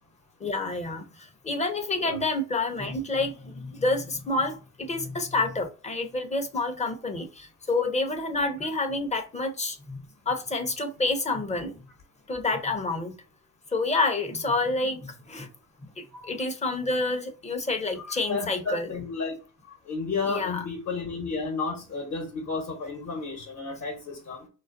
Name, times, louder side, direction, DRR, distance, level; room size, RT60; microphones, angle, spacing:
voice 1, 0.4-1.0 1.4-7.3 7.7-10.0 10.3-11.7 12.3-13.1 13.7-15.5 16.3-18.9 20.3-20.6, left 3 dB, 20° left, 0.6 m, -28 dB
voice 2, 18.0-19.3 19.9-24.5, left 4 dB, 50° left, 1.0 m, -32 dB
2.3 x 2.2 x 2.4 m
supercardioid pair, 70°, 37 cm